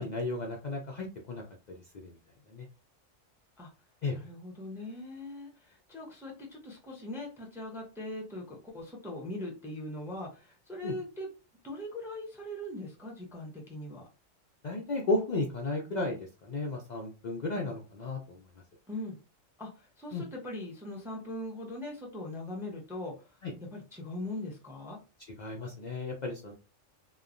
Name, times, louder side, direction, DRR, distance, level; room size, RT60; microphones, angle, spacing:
voice 1, 0.0-1.4 2.0-2.1 2.5-2.7 4.0-4.2 10.8-10.9 14.6-18.4 20.1-20.2 23.4-23.5 25.4-26.5, left 2 dB, 85° left, 0 dB, 0.3 m, -34 dB
voice 2, 4.1-11.3 11.6-14.1 18.9-19.2 19.6-23.3 23.6-25.0, left 1 dB, 5° right, -1 dB, 0.3 m, -41 dB
3.0 x 2.1 x 2.4 m, 0.33 s
omnidirectional pair, 1.3 m